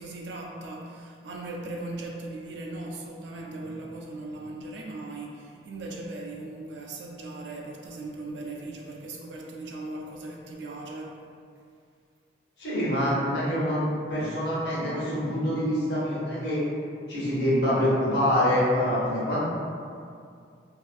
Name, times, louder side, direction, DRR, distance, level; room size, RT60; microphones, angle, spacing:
voice 1, 0.0-11.2, right 2 dB, 70° right, -1 dB, 0.4 m, -38 dB
voice 2, 12.6-13.8 14.1-16.6 17.1-19.4, equal, 65° left, -8 dB, 0.8 m, -25 dB
2.5 x 2.4 x 2.5 m, 2.3 s
head